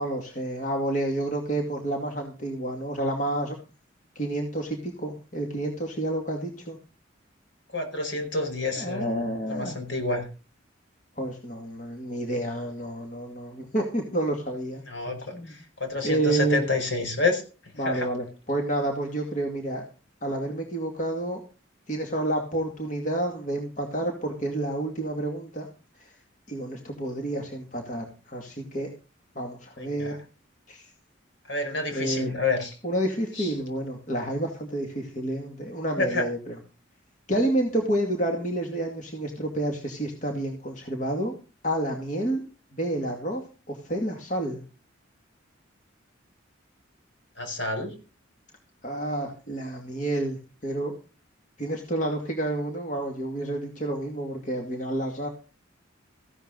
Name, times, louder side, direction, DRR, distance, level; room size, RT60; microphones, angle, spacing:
voice 1, 0.0-3.6 4.2-6.8 8.8-9.8 11.2-14.8 15.3-15.5 16.0-16.6 17.8-19.8 20.2-21.4 21.9-25.7 26.0-26.2 26.5-28.9 29.4-30.2 30.7-30.9 31.9-32.3 32.8-36.6 37.3-41.3 41.6-42.4 42.7-44.6 48.8-50.9 51.6-55.3, right 1 dB, 40° left, 1 dB, 2.3 m, -29 dB
voice 2, 7.7-10.3 14.9-17.4 17.8-18.1 29.8-30.1 31.5-32.7 33.4-33.5 36.0-36.2 47.4-47.9, left 3 dB, 70° left, 4 dB, 5.0 m, -29 dB
15.0 x 12.0 x 4.0 m, 0.34 s
head